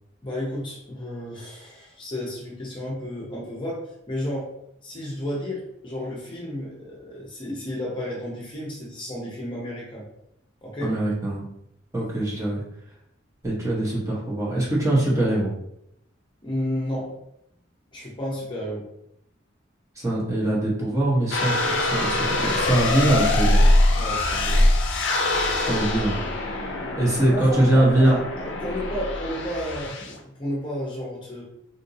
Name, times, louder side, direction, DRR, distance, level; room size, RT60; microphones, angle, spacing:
voice 1, 0.2-4.5 4.8-10.1 10.6-10.9 16.4-17.2 17.9-18.9 24.0-24.7 27.3-31.4, equal, 25° left, -3 dB, 0.7 m, -32 dB
voice 2, 10.8-11.4 11.9-12.6 13.4-15.5 20.0-23.6 25.7-26.2 27.0-28.2, right 1 dB, 15° right, -5 dB, 0.9 m, -22 dB
sound 1, 21.3-30.2, left 1 dB, 70° left, 0.5 m, -23 dB
3.8 x 2.5 x 2.6 m, 0.78 s
head